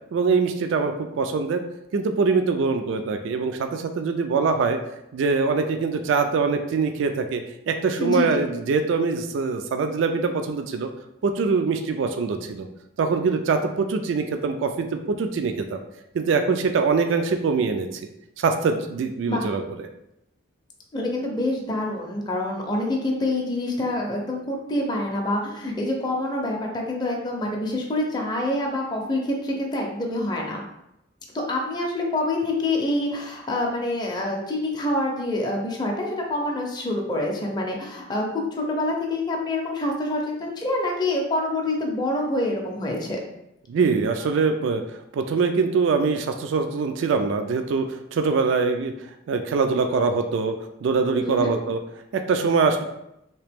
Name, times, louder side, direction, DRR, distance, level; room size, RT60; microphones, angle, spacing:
voice 1, 0.1-1.6 1.9-4.8 5.1-7.4 7.7-10.9 11.2-12.7 13.0-15.8 16.1-17.9 18.4-19.6 43.7-50.6 50.8-51.8 52.1-52.8, right 4 dB, 70° right, 7 dB, 0.3 m, -23 dB
voice 2, 20.9-30.6 31.3-43.2 51.2-51.5, left 1 dB, 20° left, -1 dB, 0.5 m, -26 dB
3.2 x 2.9 x 3.4 m, 0.85 s
head